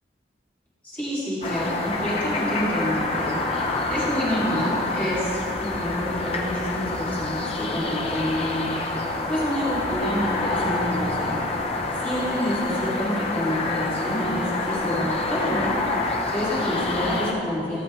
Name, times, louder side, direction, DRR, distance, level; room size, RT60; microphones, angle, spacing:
voice 1, 0.8-8.7 9.3-11.4 12.0-15.8 16.3-17.8, equal, 10° left, -10 dB, 2.3 m, -28 dB
sound 1, 1.4-17.3, left 2 dB, 35° left, 0.8 m, -27 dB
16.0 x 7.5 x 3.2 m, 2.6 s
head